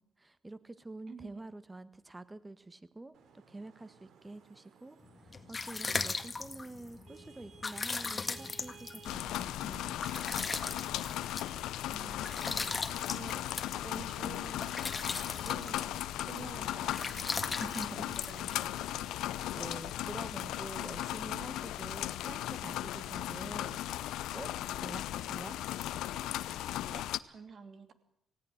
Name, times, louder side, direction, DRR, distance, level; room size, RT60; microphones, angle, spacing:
voice 1, 0.0-3.1 3.5-10.1 16.6-16.8 17.6-18.2 19.5-24.5 24.8-25.6, right 2 dB, 15° right, 14 dB, 1.5 m, -47 dB
voice 2, 1.1-1.4 11.9-15.0 15.4-16.0 16.2-17.3 17.8-19.2 26.9-27.9, right 5 dB, 50° right, 9 dB, 2.9 m, -50 dB
Vehicle horn car horn honking / Traffic noise roadway noise, 3.1-15.9, right 6 dB, 70° right, 2.9 m, -59 dB
sound 1, 5.1-19.0, left 4 dB, 30° left, 1.8 m, -39 dB
sound 2, 9.1-27.2, left 13 dB, 90° left, 0.7 m, -37 dB
19.0 x 17.0 x 8.1 m, 0.75 s
cardioid pair, 90°, 0 cm